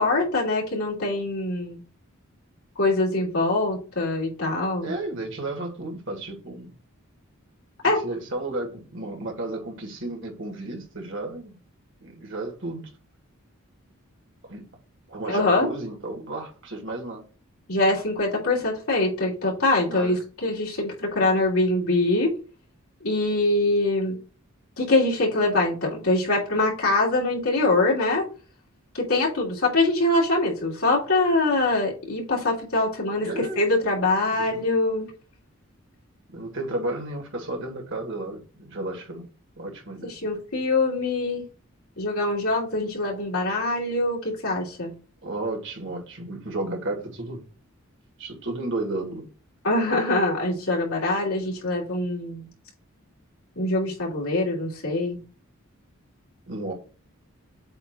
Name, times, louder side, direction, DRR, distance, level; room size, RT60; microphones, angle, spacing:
voice 1, 0.0-1.8 2.8-4.9 7.8-8.0 15.3-15.7 17.7-22.3 23.0-24.2 24.8-28.2 28.9-35.1 40.0-41.4 42.0-44.9 49.6-52.4 53.6-55.2, left 2 dB, 85° left, 2.9 m, -23 dB
voice 2, 4.8-6.7 7.8-11.6 12.0-12.9 14.4-14.6 15.1-17.3 19.9-20.2 33.2-33.6 34.3-34.6 36.3-39.3 39.6-40.2 45.2-47.5 48.2-49.3 56.5-56.7, right 2 dB, 60° right, 1.9 m, -33 dB
7.9 x 2.8 x 5.9 m
head